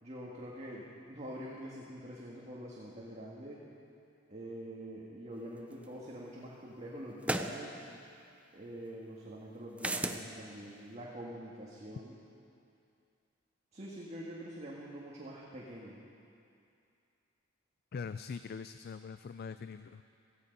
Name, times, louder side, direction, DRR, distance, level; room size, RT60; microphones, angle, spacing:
voice 1, 0.0-3.6 4.3-7.8 8.5-12.2 13.7-16.0, right 1 dB, 35° right, -5 dB, 1.8 m, -45 dB
sound 1, 5.8-5.9 7.2-7.6 9.8-10.2, right 1 dB, 5° right, 0.6 m, -33 dB
voice 2, 17.9-20.0, left 5 dB, 55° left, 11 dB, 0.4 m, -42 dB
17.0 x 15.0 x 5.4 m, 2.5 s
head